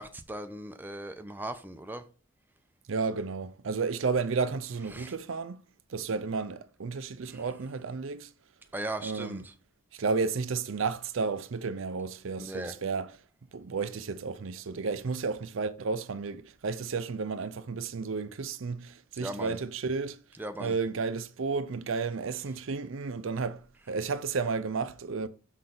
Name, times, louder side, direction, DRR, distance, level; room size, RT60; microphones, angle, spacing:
voice 1, 0.0-2.0 4.9-5.1 7.3-7.4 8.7-9.5 12.4-12.8 19.2-19.6 20.4-20.8, right 1 dB, 10° right, 0.5 m, -38 dB
voice 2, 2.9-5.6 5.9-8.3 9.0-9.5 9.9-13.1 13.5-20.2 20.6-25.3, right 4 dB, 70° right, 0.5 m, -32 dB
6.5 x 3.9 x 5.9 m
head